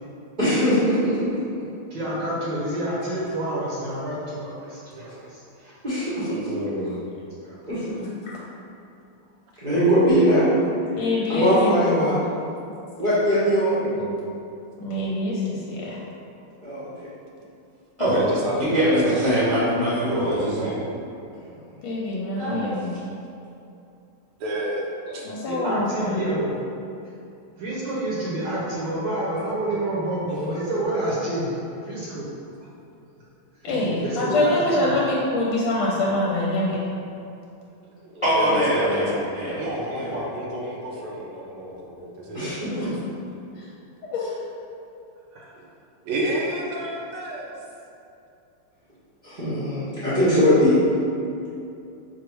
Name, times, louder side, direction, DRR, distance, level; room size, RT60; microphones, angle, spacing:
voice 1, 0.4-1.4 5.8-6.6 7.7-8.1 9.6-10.4 11.3-12.2 13.0-13.8 16.6-17.1 34.2-34.3 42.3-43.0 49.2-50.8, equal, 50° right, -13 dB, 0.5 m, -21 dB
voice 2, 1.9-5.7 7.4-7.6 25.1-26.5 27.6-31.5 31.8-32.3 34.0-34.9 45.3-45.5, right 1 dB, 65° right, -7 dB, 1.2 m, -28 dB
voice 3, 6.3-7.0 18.0-19.5 24.4-25.3 38.0-39.2 39.6-42.9 46.1-47.5, right 1 dB, 85° right, -2 dB, 1.6 m, -30 dB
voice 4, 11.0-12.2 13.9-14.2 14.8-16.0 21.8-22.9 25.2-26.3 33.6-36.8 42.8-42.9 43.5-43.7 44.1-44.4, left 2 dB, 80° left, -5 dB, 1.4 m, -25 dB
voice 5, 18.6-20.7 22.3-22.9 38.2-39.1 39.3-39.7 40.0-40.1, equal, 40° left, -11 dB, 0.4 m, -22 dB
4.7 x 2.0 x 4.5 m, 2.7 s
omnidirectional pair, 2.4 m